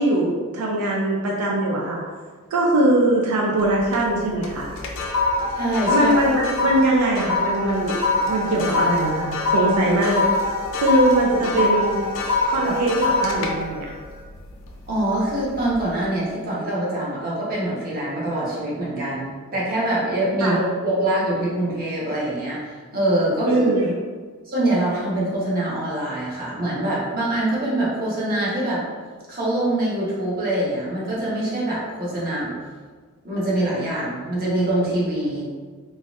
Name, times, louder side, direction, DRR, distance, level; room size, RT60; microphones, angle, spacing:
voice 1, 0.0-2.0 2.5-4.7 5.9-8.0 8.3-10.2 10.8-12.0 12.5-13.9 20.4-20.6 23.4-23.9, right 1 dB, 90° right, -2 dB, 0.5 m, -21 dB
sound 1, 3.6-4.1 4.4-15.0 15.4-15.7, left 2 dB, 60° left, 0.4 m, -24 dB
voice 2, 5.5-6.1 12.6-12.7 14.9-23.6 24.5-28.8 29.3-32.5 33.2-35.4, right 1 dB, 40° right, -7 dB, 1.0 m, -24 dB
4.0 x 2.5 x 2.4 m, 1.5 s
head